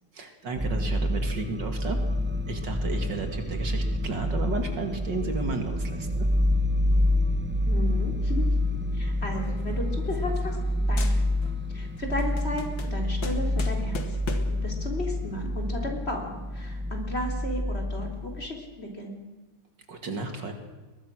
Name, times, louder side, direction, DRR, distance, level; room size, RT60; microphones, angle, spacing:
voice 1, 0.1-2.0 2.5-6.3 19.9-20.5, right 3 dB, 60° right, 6 dB, 2.8 m, -33 dB
sound 1, 0.6-18.5, left 1 dB, 10° right, 0.5 m, -27 dB
voice 2, 7.7-8.4 8.9-10.5 10.9-11.2 11.7-12.6 12.9-14.0 14.5-19.2, left 1 dB, 30° left, 2 dB, 3.9 m, -34 dB
sound 2, 9.3-10.7 11.0-11.6 12.0-14.7, left 4 dB, 65° left, 2.7 m, -39 dB
22.5 x 21.0 x 6.3 m, 1.3 s
omnidirectional pair, 2.2 m